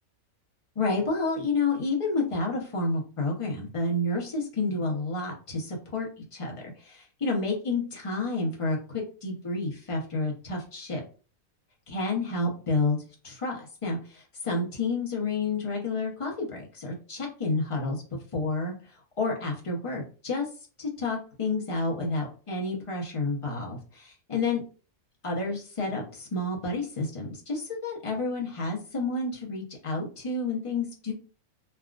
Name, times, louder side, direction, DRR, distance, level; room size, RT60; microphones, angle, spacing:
voice 1, 0.8-11.0 11.9-18.0 18.3-18.7 19.2-20.5 20.8-24.6 25.2-31.1, left 3 dB, 30° left, -1 dB, 0.7 m, -30 dB
3.3 x 2.4 x 2.4 m, 0.37 s
omnidirectional pair, 1.5 m